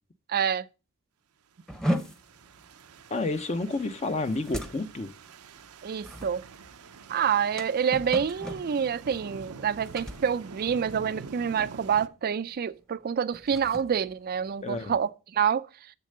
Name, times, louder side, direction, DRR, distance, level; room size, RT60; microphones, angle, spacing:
voice 1, 0.3-0.7 5.8-6.4 7.1-15.9, right 7 dB, 45° right, 0.4 m, -27 dB
sound 1, 1.7-11.3 11.6-12.0 12.4-12.6 13.2-15.1, equal, 5° left, 0.8 m, -37 dB
sound 2, 1.7-12.1, right 5 dB, 85° right, 0.7 m, -47 dB
voice 2, 3.1-5.1 14.6-14.9, left 2 dB, 30° left, 0.6 m, -30 dB
7.4 x 6.7 x 6.5 m
head